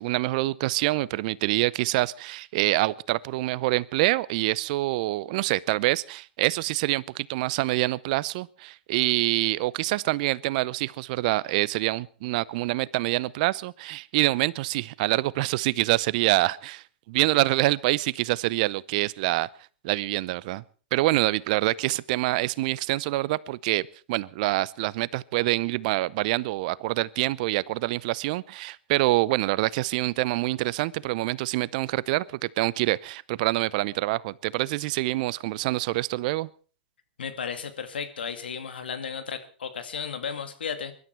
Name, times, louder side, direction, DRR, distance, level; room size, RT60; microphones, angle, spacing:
voice 1, 0.0-19.5 19.8-20.6 20.9-36.5, right 19 dB, 50° right, 0.7 m, -26 dB
voice 2, 37.2-40.9, left 6 dB, 80° left, 2.2 m, -34 dB
23.0 x 12.0 x 4.6 m
hypercardioid pair, 110°, 5 cm